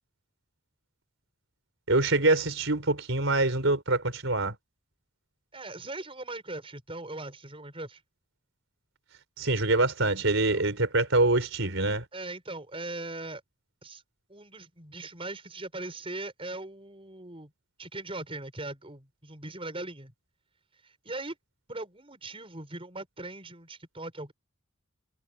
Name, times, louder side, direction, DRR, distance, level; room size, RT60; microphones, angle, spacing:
voice 1, 1.9-4.5 9.4-12.0, right 2 dB, 65° right, 4.9 m, -25 dB
voice 2, 5.5-8.0 10.5-10.6 12.1-13.4 13.8-14.0 14.3-17.5 17.8-20.1 20.8-21.4 21.7-24.3, right 2 dB, 25° right, 6.7 m, -40 dB
head